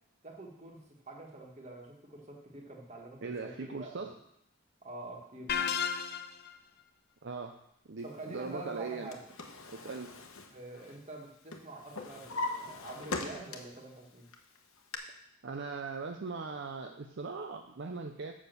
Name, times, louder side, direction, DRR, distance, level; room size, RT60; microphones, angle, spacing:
voice 1, 0.2-0.8 1.1-4.1 4.8-5.7 8.0-9.3 10.5-14.3, right 2 dB, 30° right, 0 dB, 1.6 m, -46 dB
voice 2, 3.2-4.1 7.2-7.6 7.9-9.1 9.7-10.1 15.4-18.3, right 4 dB, 55° right, 5 dB, 0.6 m, -39 dB
sound 1, 5.5-6.5, left 7 dB, 45° left, 0.5 m, -32 dB
Drawer open or close, 8.8-11.2 11.5-13.8 14.3-15.0, left 3 dB, 70° left, 1.1 m, -40 dB
7.3 x 6.2 x 6.7 m, 0.77 s
head